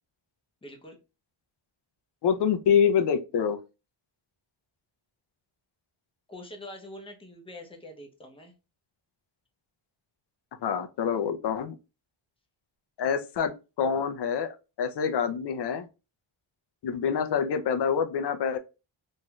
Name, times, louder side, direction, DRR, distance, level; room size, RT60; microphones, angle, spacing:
voice 1, 0.6-1.0 6.3-8.5, left 1 dB, 10° left, 0.7 m, -44 dB
voice 2, 2.2-3.6 10.6-11.7 13.0-13.5 13.8-15.9 16.8-18.6, left 7 dB, 55° left, 0.5 m, -26 dB
3.1 x 2.7 x 2.2 m
wide cardioid pair, 115°, 50 cm